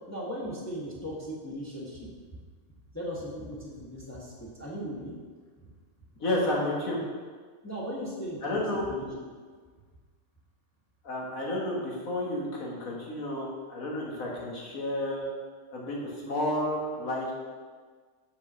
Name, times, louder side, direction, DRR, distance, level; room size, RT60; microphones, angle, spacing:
voice 1, 0.1-2.1 2.9-5.2 5.6-5.7 7.6-8.6 8.9-9.1, equal, 15° left, -5 dB, 1.0 m, -37 dB
voice 2, 6.2-7.0 8.4-8.8 11.0-15.3 15.7-17.3, left 1 dB, 80° left, -3 dB, 1.8 m, -31 dB
5.4 x 4.4 x 6.0 m, 1.5 s
omnidirectional pair, 1.4 m